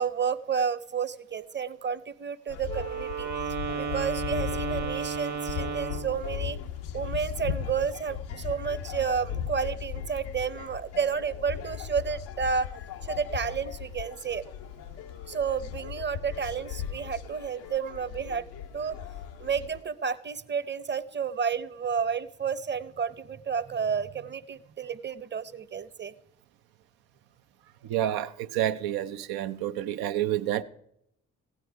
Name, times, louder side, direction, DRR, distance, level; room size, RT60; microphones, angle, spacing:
voice 1, 0.0-6.6 6.9-12.7 13.0-14.4 15.3-18.5 18.7-19.0 19.4-26.1, right 6 dB, 30° right, 0.8 m, -31 dB
sound 1, 2.5-19.8, left 9 dB, 85° left, 0.6 m, -37 dB
Wind instrument woodwind instrument, 2.6-6.2, right 6 dB, 55° right, 1.3 m, -33 dB
voice 2, 27.9-30.6, right 12 dB, 80° right, 0.6 m, -29 dB
15.5 x 9.8 x 4.7 m
hypercardioid pair, 45°, 36 cm